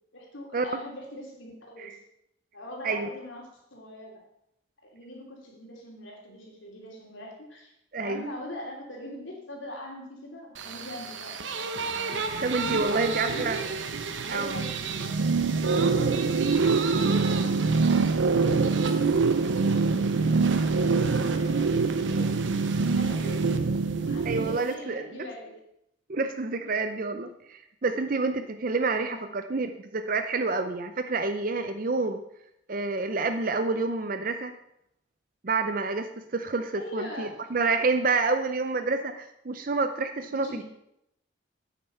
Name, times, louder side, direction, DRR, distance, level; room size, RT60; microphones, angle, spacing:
voice 1, 0.1-2.0 2.5-3.4 3.7-4.2 4.8-7.7 8.0-11.7 12.6-13.7 14.2-15.3 15.6-16.4 17.4-18.1 18.9-23.5 24.0-25.6 29.0-29.3 36.7-37.3 40.4-40.6, left 1 dB, 75° left, -1 dB, 3.1 m, -42 dB
voice 2, 7.9-8.2 12.4-13.6 14.3-14.5 17.0-17.3 24.3-25.3 26.1-32.2 32.7-34.5 35.4-40.6, right 3 dB, 45° right, 8 dB, 0.6 m, -28 dB
sound 1, 10.5-24.7, right 5 dB, 70° right, 0.9 m, -36 dB
sound 2, 12.3-24.6, right 4 dB, 90° right, 0.5 m, -25 dB
8.9 x 8.8 x 5.6 m, 0.79 s
head